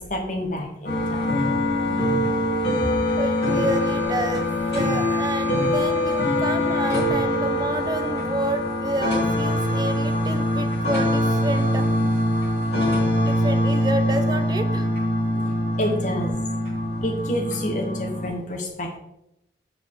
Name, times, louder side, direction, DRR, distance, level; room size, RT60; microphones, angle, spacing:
voice 1, 0.0-1.4 15.6-16.4 17.0-19.0, equal, 45° left, 2 dB, 1.1 m, -29 dB
sound 1, 0.8-18.3, left 1 dB, 65° left, 3.2 m, -23 dB
voice 2, 3.2-11.9 12.7-14.9, right 1 dB, 20° right, 8 dB, 0.6 m, -29 dB
7.3 x 6.6 x 3.6 m, 0.83 s
head